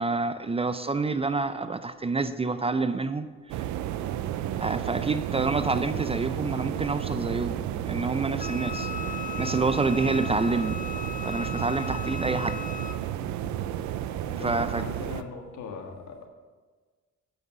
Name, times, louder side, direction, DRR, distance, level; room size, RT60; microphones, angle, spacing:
voice 1, 0.0-3.3 4.6-7.6 7.8-8.9 9.4-10.8 11.2-12.6 14.4-14.8, right 3 dB, 20° right, 11 dB, 0.5 m, -27 dB
sound 1, 3.5-15.2, right 11 dB, 75° right, 0.6 m, -32 dB
Wind instrument woodwind instrument, 8.4-13.0, left 6 dB, 25° left, 0.7 m, -37 dB
voice 2, 14.2-16.3, left 5 dB, 70° left, 3 dB, 1.6 m, -40 dB
9.2 x 6.1 x 6.2 m, 1.4 s
supercardioid pair, 70°, 29 cm